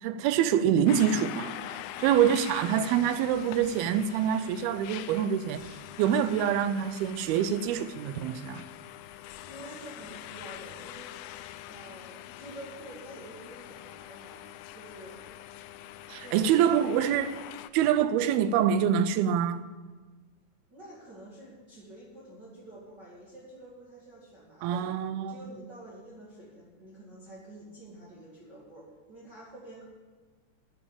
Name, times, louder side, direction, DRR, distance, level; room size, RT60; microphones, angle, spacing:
voice 1, 0.0-5.7 6.0-8.7 16.1-17.4 17.7-19.7 24.6-25.5, right 9 dB, 85° right, 2.5 m, -26 dB
sound 1, 0.9-17.7, left 13 dB, 90° left, 2.5 m, -44 dB
voice 2, 1.9-2.2 9.4-11.1 11.7-15.2 16.2-16.7 20.7-24.9 25.3-29.8, right 1 dB, 30° right, 2.5 m, -48 dB
10.0 x 9.1 x 8.7 m
omnidirectional pair, 4.4 m